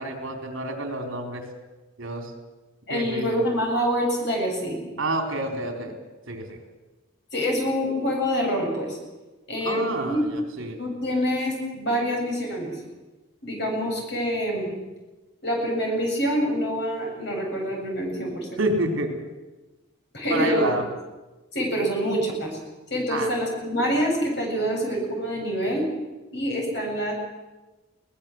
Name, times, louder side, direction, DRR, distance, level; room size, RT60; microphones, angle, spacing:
voice 1, 0.0-1.4 2.0-2.3 2.9-3.4 5.0-5.9 6.3-6.6 9.6-10.8 18.6-19.2 20.3-20.8 23.1-23.3, right 1 dB, 70° right, 4 dB, 3.9 m, -28 dB
voice 2, 2.9-4.8 7.3-9.0 9.5-10.2 10.8-12.7 13.4-14.7 15.4-18.6 20.1-20.7 21.5-22.6 22.9-25.8 26.3-27.1, equal, 55° left, 0 dB, 7.5 m, -26 dB
21.5 x 19.0 x 7.8 m, 1.1 s
head